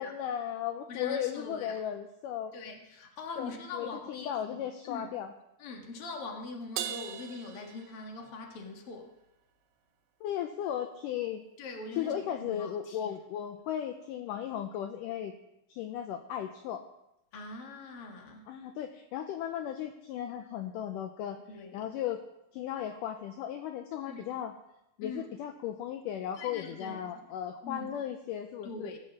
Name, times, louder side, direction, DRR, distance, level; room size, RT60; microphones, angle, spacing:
voice 1, 0.0-2.5 3.4-5.3 10.2-11.4 12.0-15.3 15.7-16.8 18.5-22.3 22.5-24.5 25.0-28.9, left 10 dB, 75° left, 6 dB, 2.1 m, -36 dB
voice 2, 0.9-1.8 2.5-5.1 5.6-9.1 11.6-13.1 17.3-18.5 21.5-21.9 24.0-24.3 25.0-25.2 26.4-27.0 27.6-27.9 28.6-29.0, left 3 dB, 45° left, 2 dB, 2.2 m, -42 dB
Crash cymbal, 6.8-8.5, right 11 dB, 80° right, 2.5 m, -39 dB
17.0 x 6.6 x 7.2 m, 0.87 s
omnidirectional pair, 4.2 m